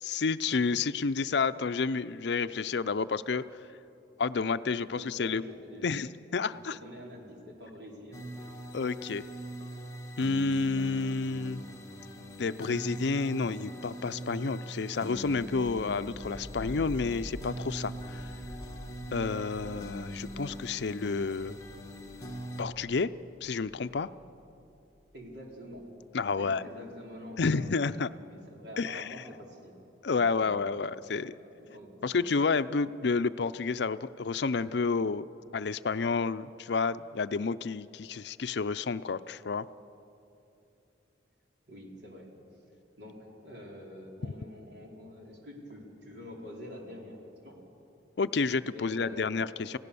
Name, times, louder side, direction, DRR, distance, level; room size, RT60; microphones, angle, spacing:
voice 1, 0.0-3.4 4.2-5.4 5.8-6.8 8.7-9.2 10.2-11.6 12.4-18.3 19.1-21.6 22.6-23.1 23.4-24.1 26.1-26.6 27.4-28.1 28.8-29.1 30.0-31.3 32.0-35.2 35.5-39.7 44.2-44.4 48.2-49.8, left 4 dB, 65° left, 13 dB, 0.5 m, -30 dB
voice 2, 4.9-5.9 6.5-8.2 25.1-25.8 26.4-29.7 30.1-32.2 41.7-42.3 43.0-47.2 47.4-47.6 48.7-49.4, equal, 60° right, -1 dB, 4.1 m, -47 dB
sound 1, 8.1-22.6, right 1 dB, 20° left, 1.4 m, -42 dB
sound 2, 15.1-25.8, left 1 dB, 40° right, 3.8 m, -48 dB
29.5 x 17.0 x 6.9 m, 2.8 s
head